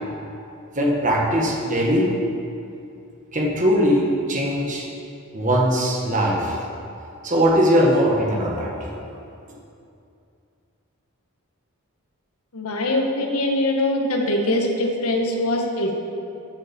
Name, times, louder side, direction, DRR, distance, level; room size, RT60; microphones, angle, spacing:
voice 1, 0.7-2.1 3.3-4.9 5.3-6.6 7.2-8.9, equal, 35° right, -2 dB, 1.6 m, -20 dB
voice 2, 12.5-16.0, left 1 dB, 80° left, 0 dB, 1.6 m, -22 dB
14.0 x 7.8 x 4.5 m, 2.6 s
head